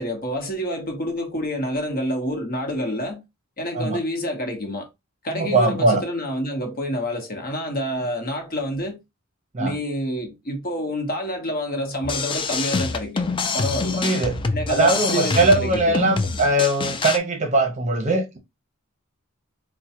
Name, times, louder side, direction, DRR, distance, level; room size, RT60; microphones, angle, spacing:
voice 1, 0.0-3.2 3.6-4.9 5.2-9.0 9.6-13.3 13.5-14.0 14.5-16.0, equal, 45° left, 1.0 m, -28 dB
voice 2, 5.3-6.0 9.5-9.8 13.9-14.4 14.7-18.4, right 2 dB, 35° right, 0.7 m, -20 dB
sound 1, 12.0-17.2, left 4 dB, 25° left, 0.3 m, -26 dB
4.5 x 2.2 x 2.8 m
head